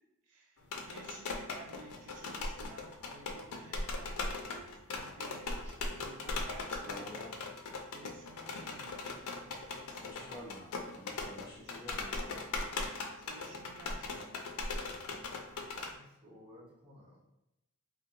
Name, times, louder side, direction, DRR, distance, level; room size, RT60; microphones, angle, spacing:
voice 1, 0.2-7.3 7.9-9.1 9.5-10.6 11.4-12.0 13.2-14.4, right 3 dB, 85° right, 0 dB, 0.4 m, -54 dB
sound 1, 0.6-15.9, left 3 dB, 80° left, 0.5 m, -39 dB
voice 2, 6.7-7.6 10.0-12.3, left 1 dB, 20° left, -4 dB, 0.3 m, -50 dB
voice 3, 15.8-17.3, left 1 dB, 25° right, -8 dB, 1.0 m, -57 dB
3.7 x 2.2 x 2.6 m, 0.87 s
head